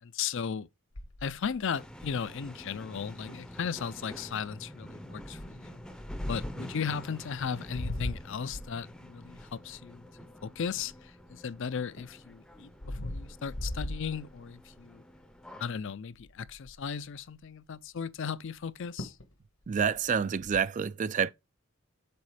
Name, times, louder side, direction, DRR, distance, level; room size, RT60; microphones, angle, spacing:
voice 1, 0.0-0.7 1.2-5.8 6.2-10.1 10.4-15.0 15.6-19.2, left 6 dB, 60° left, 0.5 m, -36 dB
sound 1, 0.9-2.4 3.0-3.1 3.3-3.5 4.1-4.4 5.2-6.7 7.4-11.3 11.7-14.8 15.2-15.5 15.8-15.9 16.1-16.9 18.6-18.7 19.0-19.3 19.6-20.6, left 1 dB, 90° left, 1.8 m, -40 dB
sound 2, 1.7-15.6, equal, 5° left, 0.6 m, -47 dB
voice 2, 19.7-21.3, right 6 dB, 35° right, 0.4 m, -28 dB
6.9 x 4.1 x 4.9 m
head